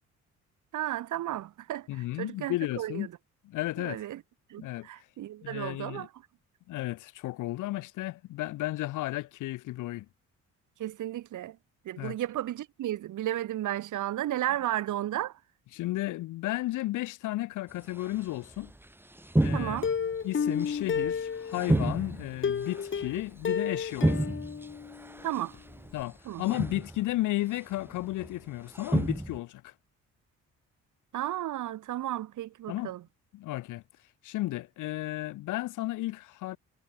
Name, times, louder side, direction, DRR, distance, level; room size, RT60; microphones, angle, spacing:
voice 1, 0.7-3.1 3.8-4.2 4.5-6.1 10.8-11.6 11.9-15.4 19.5-19.9 25.2-25.6 26.3-26.4 31.1-33.0, right 13 dB, 80° right, 6.9 m, -33 dB
voice 2, 1.9-3.1 3.4-4.0 4.6-4.9 5.4-6.1 6.7-10.1 12.0-12.2 15.7-18.7 19.4-19.8 20.2-24.4 25.9-29.7 32.7-32.9 33.3-33.8 34.2-36.6, left 17 dB, 90° left, 1.4 m, -33 dB
sound 1, 18.0-18.2 18.4-18.7 19.2-20.2 20.6-21.2 21.5-23.4 23.9-25.4 25.7-26.0 26.4-27.1 27.8-28.4 28.7-29.4, right 1 dB, 5° right, 2.6 m, -30 dB
Plucked string instrument, 19.8-21.8 22.4-25.2 25.5-25.6 26.0-26.1, left 7 dB, 40° left, 2.1 m, -31 dB
cardioid pair, 90°, 30 cm